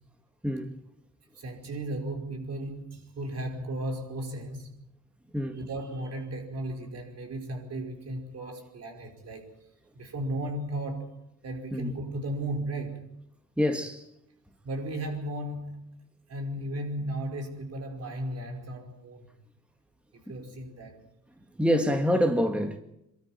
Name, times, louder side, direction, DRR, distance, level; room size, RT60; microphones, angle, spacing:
voice 1, 0.4-0.8 5.3-5.6 11.7-12.0 13.6-14.1 21.6-22.8, equal, 5° right, 1.8 m, -26 dB
voice 2, 1.4-4.7 5.5-9.4 9.9-13.1 14.6-15.8 16.3-19.3 20.2-20.9, right 1 dB, 55° right, 5.2 m, -35 dB
23.5 x 13.0 x 9.3 m
cardioid pair, 90°, 30 cm